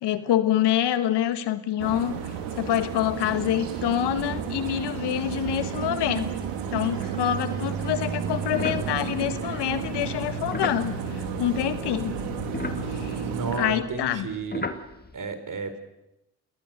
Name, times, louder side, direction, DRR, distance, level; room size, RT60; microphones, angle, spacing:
voice 1, 0.0-2.1 2.6-6.3 6.7-12.2 12.9-13.2 13.6-14.3, left 11 dB, 75° left, 12 dB, 1.5 m, -26 dB
sound 1, 1.8-13.6, right 7 dB, 80° right, 3.2 m, -32 dB
sound 2, 7.8-12.0 12.3-15.2, left 2 dB, 20° left, 2.6 m, -37 dB
voice 2, 13.3-14.7 15.1-15.8, right 4 dB, 50° right, 9 dB, 4.3 m, -32 dB
29.5 x 18.5 x 6.6 m, 0.91 s
hypercardioid pair, 50°, 41 cm